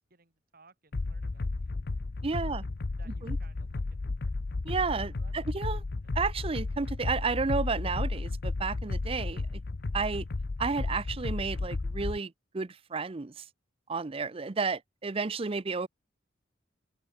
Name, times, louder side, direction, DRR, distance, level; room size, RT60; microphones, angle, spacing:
voice 1, 0.1-1.7 2.4-2.5 3.0-4.3 5.2-5.5, right 3 dB, 50° right, 4.0 m, -61 dB
sound 1, 0.9-12.2, left 3 dB, 55° left, 0.6 m, -33 dB
voice 2, 2.2-2.6 3.2-3.4 4.6-5.8 6.2-9.4 9.9-10.2 10.6-13.3 13.9-15.9, right 4 dB, 30° right, 0.5 m, -32 dB
open air
head